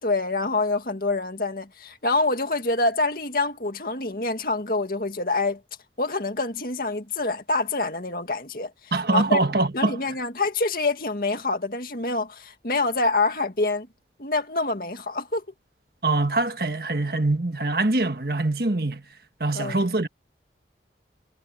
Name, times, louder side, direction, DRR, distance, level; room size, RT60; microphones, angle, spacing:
voice 1, 0.0-5.6 6.0-9.4 9.7-13.9 14.2-15.4 19.5-19.8, left 3 dB, 55° left, 2.2 m, -26 dB
voice 2, 8.9-10.0 16.0-19.0 19.4-20.1, right 2 dB, 55° right, 1.6 m, -23 dB
head